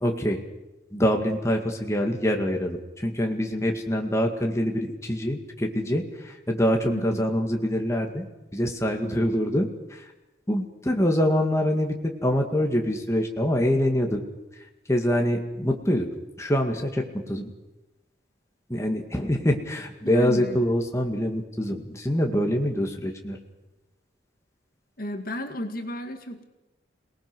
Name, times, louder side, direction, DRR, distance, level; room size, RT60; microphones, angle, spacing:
voice 1, 0.0-0.4 0.9-8.3 8.5-10.1 10.5-14.2 14.5-16.1 16.4-17.5 18.7-23.4, equal, 15° left, 2 dB, 2.0 m, -25 dB
voice 2, 6.9-7.3 20.0-20.7 25.0-26.4, left 1 dB, 45° left, 6 dB, 2.0 m, -33 dB
28.5 x 19.0 x 6.2 m, 1.0 s
head